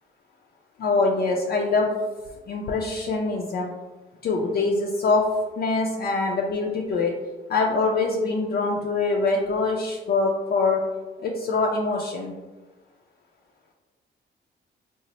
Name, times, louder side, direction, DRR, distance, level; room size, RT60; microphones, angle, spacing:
voice 1, 0.8-1.9 2.5-3.7 4.2-5.3 5.6-7.1 7.5-10.8 11.2-12.3, left 3 dB, 55° left, -1 dB, 0.4 m, -24 dB
4.0 x 2.0 x 2.9 m, 1.2 s
cardioid pair, 90°, 20 cm